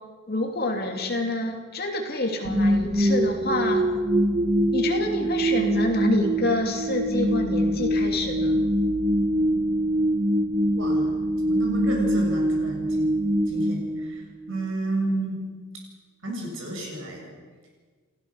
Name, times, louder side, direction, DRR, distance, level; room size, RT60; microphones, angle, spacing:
voice 1, 0.3-3.9 4.7-8.6, left 1 dB, 45° left, 3 dB, 2.8 m, -27 dB
sound 1, 2.5-14.6, right 1 dB, 25° right, 0.9 m, -24 dB
voice 2, 10.7-11.1 11.4-13.1 13.5-15.4 16.2-17.3, right 1 dB, 60° right, 0 dB, 7.3 m, -31 dB
30.0 x 15.5 x 6.6 m, 1.5 s
head